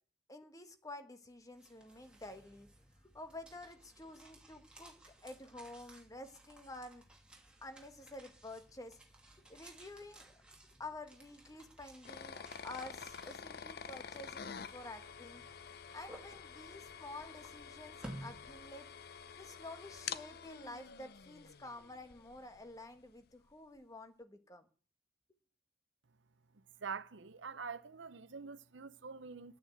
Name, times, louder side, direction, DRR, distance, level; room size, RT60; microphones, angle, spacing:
voice 1, 0.3-2.7 3.0-7.0 7.6-9.0 9.5-10.4 10.8-15.4 15.9-18.9 19.4-24.6, left 2 dB, 20° left, 1.3 m, -50 dB
sound 1, 1.3-19.3, right 1 dB, 5° right, 2.7 m, -57 dB
sound 2, 12.0-22.9, left 7 dB, 55° left, 0.6 m, -49 dB
voice 2, 26.8-29.6, right 5 dB, 75° right, 0.8 m, -45 dB
10.5 x 9.2 x 8.0 m
head